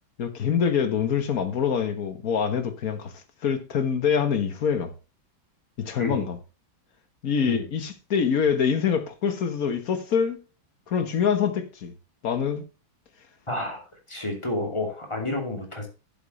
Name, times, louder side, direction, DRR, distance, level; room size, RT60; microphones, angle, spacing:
voice 1, 0.2-3.1 3.4-4.9 5.8-6.4 7.2-10.4 10.9-11.9 12.2-12.6, left 7 dB, 50° left, 1.5 m, -25 dB
voice 2, 6.0-6.3 7.5-7.7 13.5-15.9, left 2 dB, 15° left, 2.5 m, -30 dB
11.0 x 8.1 x 3.2 m
omnidirectional pair, 2.2 m